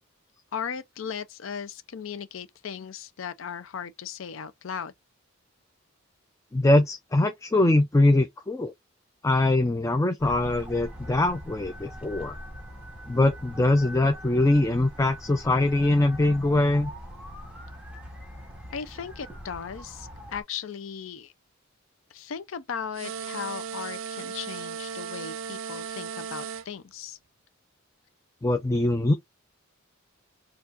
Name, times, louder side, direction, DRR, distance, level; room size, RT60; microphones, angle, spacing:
voice 1, 0.5-4.9 18.7-21.3 22.1-27.2, left 7 dB, 70° left, 0.5 m, -37 dB
voice 2, 6.5-8.7 9.2-12.4 13.1-16.9 28.4-29.1, left 2 dB, 15° left, 0.4 m, -22 dB
sound 1, 10.2-20.4, equal, 5° right, 1.8 m, -42 dB
sound 2, 22.9-26.7, right 6 dB, 65° right, 0.4 m, -36 dB
4.5 x 2.4 x 2.6 m
head